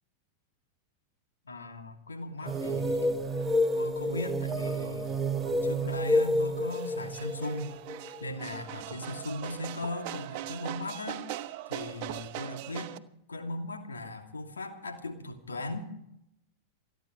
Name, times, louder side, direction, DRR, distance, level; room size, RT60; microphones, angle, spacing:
voice 1, 1.4-3.2 3.8-5.1 5.4-7.8 8.2-11.2 11.7-12.9 13.3-15.9, left 2 dB, 75° left, 4 dB, 2.7 m, -38 dB
sound 1, 2.4-8.9, equal, 10° right, 1.1 m, -29 dB
sound 2, 2.4-13.0, right 14 dB, 45° right, 0.9 m, -42 dB
28.5 x 10.0 x 4.6 m, 0.78 s
figure-of-eight pair, 90°, 0 cm